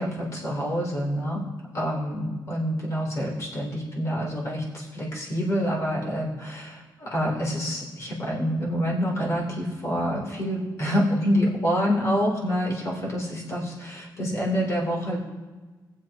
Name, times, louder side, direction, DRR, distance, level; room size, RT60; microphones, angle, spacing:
voice 1, 0.0-1.4 1.7-15.2, equal, 40° left, -2 dB, 2.9 m, -27 dB
21.5 x 7.7 x 2.8 m, 1.3 s
wide cardioid pair, 160°, 8 cm